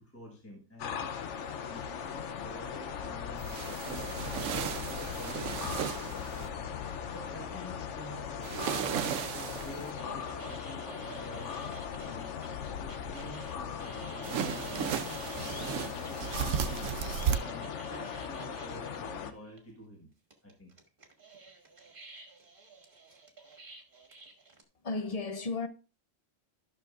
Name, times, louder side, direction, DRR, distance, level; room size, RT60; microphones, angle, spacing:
voice 1, 0.0-1.4 1.7-8.5 9.1-11.6 12.0-12.4 12.8-14.9 15.4-20.1 20.4-20.7, equal, 10° left, 1.3 m, -49 dB
sound 1, 0.8-19.3, left 7 dB, 70° left, 1.0 m, -39 dB
sound 2, 3.4-6.5 8.4-9.9 14.2-17.4, right 8 dB, 90° right, 1.0 m, -34 dB
sound 3, 9.6-16.7 17.3-19.0 19.6-19.7 20.3-24.6, right 4 dB, 45° right, 1.6 m, -50 dB
voice 2, 24.8-25.7, left 3 dB, 40° left, 0.6 m, -33 dB
12.5 x 6.2 x 2.4 m
omnidirectional pair, 1.3 m